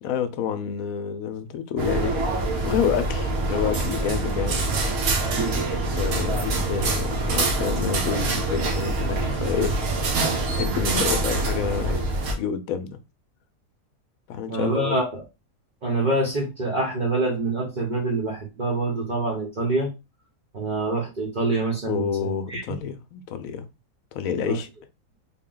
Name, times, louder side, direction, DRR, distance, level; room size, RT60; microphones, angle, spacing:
voice 1, 0.0-2.2 2.6-4.7 5.9-9.7 10.5-12.0 12.4-13.0 14.3-15.0 21.9-23.7 24.1-24.7, left 8 dB, 75° left, 1.0 m, -28 dB
sound 1, 1.8-12.3, right 2 dB, 75° right, 1.3 m, -25 dB
voice 2, 14.5-15.2 15.8-19.9 20.5-22.8 24.4-24.6, right 2 dB, 40° right, 0.9 m, -26 dB
3.8 x 2.2 x 3.7 m
omnidirectional pair, 1.5 m